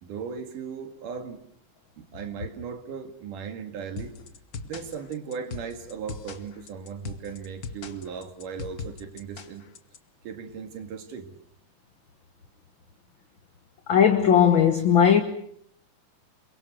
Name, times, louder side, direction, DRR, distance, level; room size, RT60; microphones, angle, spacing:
voice 1, 0.0-1.4 2.0-4.2 4.6-9.6 10.2-11.3, right 6 dB, 75° right, 3.6 m, -37 dB
sound 1, 4.0-10.0, left 5 dB, 80° left, 0.8 m, -40 dB
voice 2, 13.9-15.2, left 8 dB, 50° left, 1.5 m, -18 dB
28.5 x 23.0 x 6.4 m
omnidirectional pair, 3.8 m